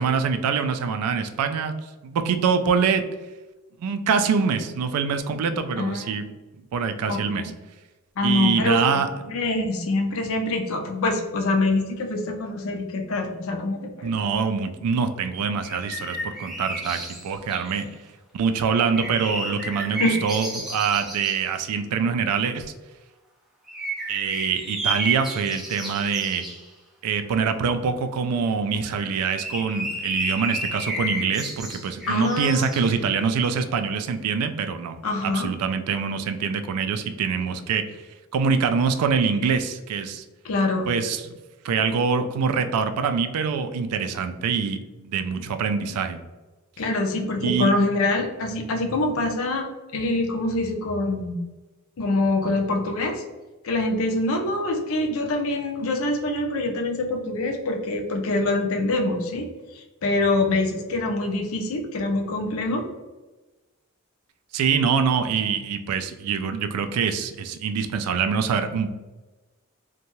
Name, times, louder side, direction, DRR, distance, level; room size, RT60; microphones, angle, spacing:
voice 1, 0.0-1.7 2.0-3.0 3.8-6.2 6.6-7.5 8.2-9.3 14.0-17.9 18.3-22.7 24.1-26.4 27.0-35.0 35.2-38.0 38.3-40.2 40.9-41.2 41.6-46.2 47.4-47.7 64.5-68.9, right 6 dB, 85° right, 9 dB, 0.3 m, -24 dB
voice 2, 5.8-6.1 7.1-7.5 8.2-14.1 20.0-20.2 32.1-32.7 35.0-35.5 40.4-40.9 46.8-49.7 49.9-51.4 52.0-53.2 53.6-59.5 59.7-62.8, left 2 dB, 65° left, 4 dB, 0.5 m, -25 dB
sound 1, 15.6-17.8 18.7-21.4 23.7-26.6 28.8-33.4, right 1 dB, ahead, 0.4 m, -32 dB
2.7 x 2.2 x 2.9 m, 1.2 s
head